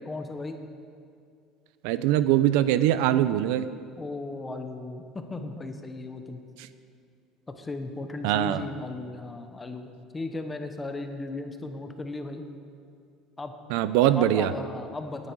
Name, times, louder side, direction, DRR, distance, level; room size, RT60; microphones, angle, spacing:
voice 1, 0.0-0.6 4.0-6.4 7.5-12.4 13.4-13.6 14.2-15.3, left 2 dB, 15° left, 6 dB, 1.0 m, -36 dB
voice 2, 1.8-3.7 8.2-8.6 13.7-14.5, right 12 dB, 80° right, 13 dB, 0.6 m, -22 dB
18.5 x 10.0 x 4.8 m, 2.3 s
cardioid pair, 165°, 0 cm